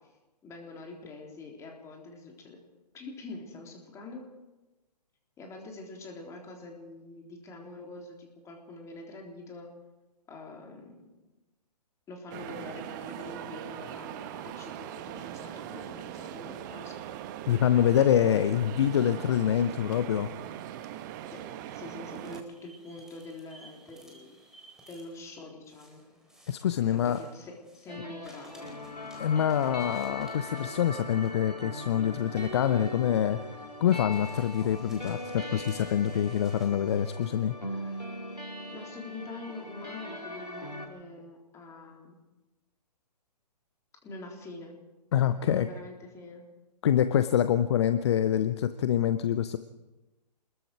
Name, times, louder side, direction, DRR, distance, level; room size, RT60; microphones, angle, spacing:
voice 1, 0.4-2.6 2.9-4.2 5.4-9.7 10.3-11.1 12.1-17.0 21.3-21.4 21.7-24.3 24.9-26.0 26.9-28.7 38.7-42.2 44.0-44.7 45.4-46.4, left 2 dB, 15° left, 1 dB, 3.8 m, -45 dB
sound 1, 12.3-22.4, right 11 dB, 30° right, 1.2 m, -41 dB
voice 2, 17.5-20.3 26.5-27.2 29.2-33.4 33.8-37.9 45.1-45.7 46.8-49.6, left 9 dB, 40° left, 12 dB, 0.8 m, -26 dB
sound 2, 22.1-27.9 28.2-37.4, equal, 5° right, 4.1 m, -56 dB
sound 3, 27.9-40.9, left 1 dB, 90° left, 4.5 m, -40 dB
28.0 x 21.5 x 4.8 m, 1.1 s
figure-of-eight pair, 125°, 21 cm